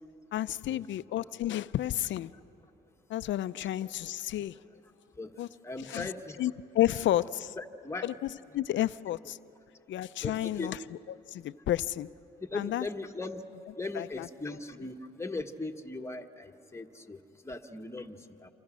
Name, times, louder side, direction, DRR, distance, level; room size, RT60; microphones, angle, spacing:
voice 1, 0.3-2.3 3.1-4.6 5.4-5.5 5.8-6.1 6.4-7.6 8.0-9.4 9.9-10.8 11.3-12.1 12.5-12.8 13.9-14.3 14.8-14.9, left 13 dB, 70° left, 15 dB, 0.6 m, -31 dB
voice 2, 5.6-6.4 7.6-8.1 10.2-10.7 12.5-13.4 13.8-17.2 17.4-18.5, left 3 dB, 15° left, 4 dB, 1.4 m, -38 dB
28.5 x 26.5 x 6.3 m, 2.9 s
cardioid pair, 90°, 20 cm